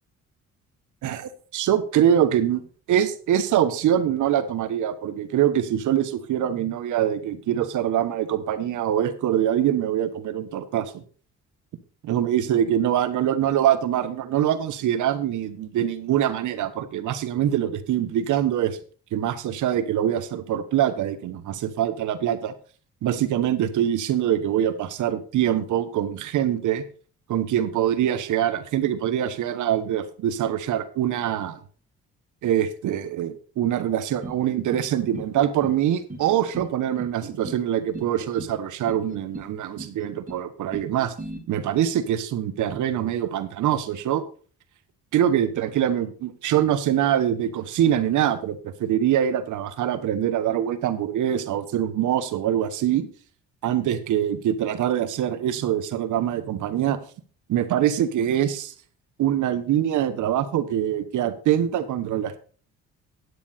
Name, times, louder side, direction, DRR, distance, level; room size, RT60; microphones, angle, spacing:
voice 1, 1.0-2.6 2.9-11.0 12.0-18.8 19.1-22.5 23.0-26.8 27.3-31.6 32.4-41.1 41.5-44.2 45.1-53.1 53.6-57.0 57.5-58.7 59.2-62.4, right 10 dB, 75° right, 12 dB, 1.2 m, -24 dB
sound 1, 34.2-34.9 35.1-35.8 36.1-36.7 37.0-37.6 37.9-38.6 38.9-39.5 39.8-40.4 40.7-41.4, right 2 dB, 25° right, 2.8 m, -38 dB
9.9 x 8.6 x 4.2 m, 0.41 s
cardioid pair, 90°, 30 cm